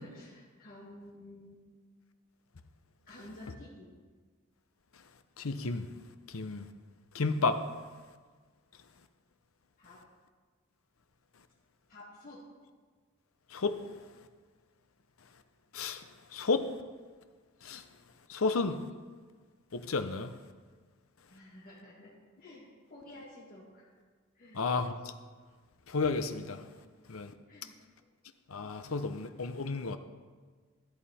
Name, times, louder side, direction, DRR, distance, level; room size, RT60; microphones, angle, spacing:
voice 1, 0.0-1.6 3.1-3.9 9.8-10.0 11.9-12.5 21.3-24.0 24.3-24.6 26.8-27.0 27.5-27.8, left 1 dB, 45° left, 2.3 m, -51 dB
voice 2, 5.4-5.9 6.3-6.7 7.1-7.6 13.5-13.8 15.7-16.0 16.3-16.7 17.6-17.8 18.3-18.8 19.7-20.3 24.5-24.9 25.9-26.6 27.1-27.3 28.5-30.0, left 4 dB, 80° left, 0.8 m, -32 dB
14.0 x 9.1 x 4.3 m
head